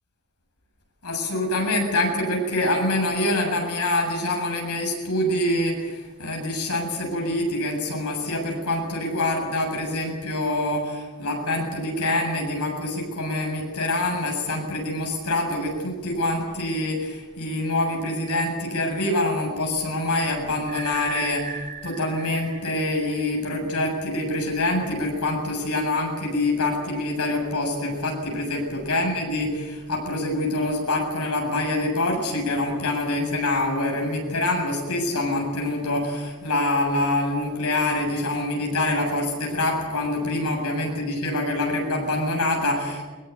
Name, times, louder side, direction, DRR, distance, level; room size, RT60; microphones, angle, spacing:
voice 1, 1.0-43.1, left 2 dB, 85° left, 0 dB, 7.8 m, -25 dB
sound 1, 20.7-23.5, right 6 dB, 35° right, 4.6 m, -37 dB
21.0 x 21.0 x 9.5 m, 1.3 s
head